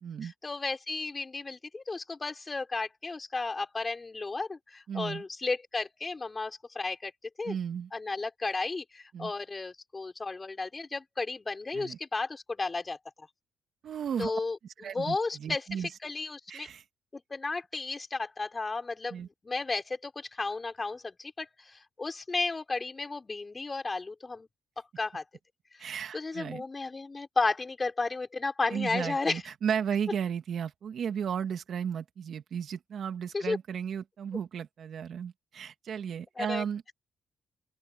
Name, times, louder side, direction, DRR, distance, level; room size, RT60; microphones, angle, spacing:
voice 1, 0.2-7.1 7.4-7.6 7.9-13.3 14.2-16.7 17.1-24.5 25.0-25.2 25.8-29.4 33.3-33.6 36.4-36.6, left 3 dB, 25° left, 5.9 m, -33 dB
voice 2, 4.9-5.2 7.5-7.9 9.1-9.3 11.7-12.0 13.8-14.3 14.8-15.9 16.5-16.8 19.1-19.3 25.8-26.6 28.7-36.8, right 8 dB, 60° right, 2.3 m, -34 dB
open air
cardioid pair, 90°, 0 cm